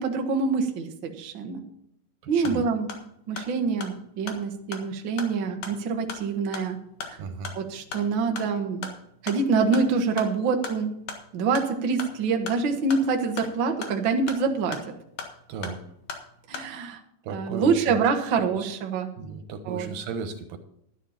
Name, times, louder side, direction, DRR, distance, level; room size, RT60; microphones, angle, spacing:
voice 1, 0.0-1.6 2.3-2.9 3.3-6.8 7.1-7.2 7.5-8.9 9.2-10.9 11.3-14.8 16.5-17.0 17.3-19.1 19.6-19.9, right 4 dB, 55° right, 4 dB, 1.5 m, -26 dB
sound 1, 2.2-16.7, left 5 dB, 60° left, 2.8 m, -41 dB
voice 2, 2.3-2.7 7.2-7.5 15.5-15.8 17.2-18.0 18.4-18.5 19.2-20.6, right 5 dB, 90° right, 7 dB, 3.0 m, -35 dB
12.0 x 11.5 x 4.3 m, 0.75 s
omnidirectional pair, 3.9 m